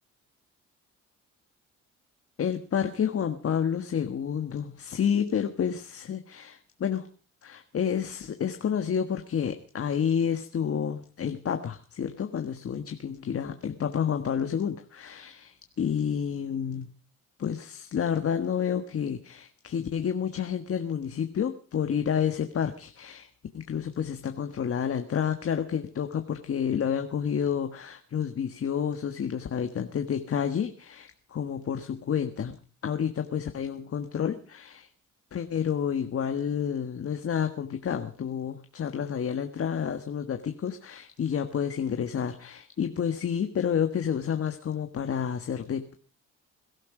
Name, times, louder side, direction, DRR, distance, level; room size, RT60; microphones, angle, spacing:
voice 1, 2.4-7.1 7.4-16.9 17.4-23.3 23.5-32.6 32.8-34.9 35.3-45.9, left 8 dB, 50° left, 7 dB, 1.5 m, -29 dB
21.5 x 13.0 x 5.0 m, 0.41 s
cardioid pair, 90°, 30 cm